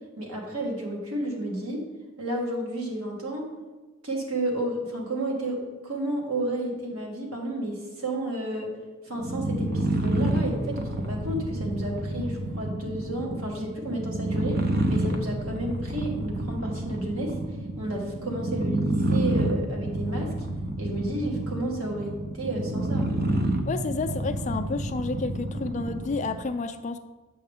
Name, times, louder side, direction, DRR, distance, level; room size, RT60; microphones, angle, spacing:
voice 1, 0.2-1.8 2.2-3.5 4.0-8.7 9.0-14.6 14.9-17.4 17.8-20.3 20.8-23.1, right 1 dB, 85° right, -1 dB, 1.6 m, -31 dB
sound 1, 9.2-26.4, right 1 dB, 45° right, 0.7 m, -29 dB
voice 2, 23.7-27.0, left 3 dB, 35° left, 9 dB, 0.3 m, -30 dB
7.8 x 5.7 x 3.5 m, 1.2 s
head